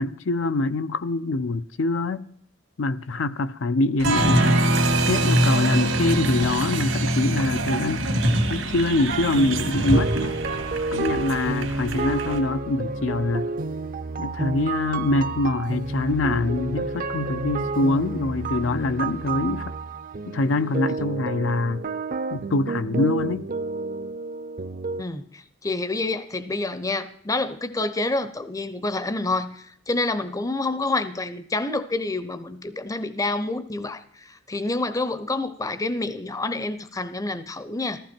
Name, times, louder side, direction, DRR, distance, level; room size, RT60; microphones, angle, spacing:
voice 1, 0.0-2.3 2.8-4.6 5.1-8.1 8.5-10.4 10.9-13.5 14.2-19.8 20.3-21.8 22.3-23.5, left 2 dB, 70° left, 0.5 m, -24 dB
Applause, 4.0-12.4, right 1 dB, 85° right, 2.2 m, -23 dB
sound 1, 9.1-25.0, right 3 dB, 45° right, 0.6 m, -30 dB
voice 2, 25.0-38.0, left 2 dB, 20° left, 0.6 m, -28 dB
14.5 x 14.5 x 4.4 m
head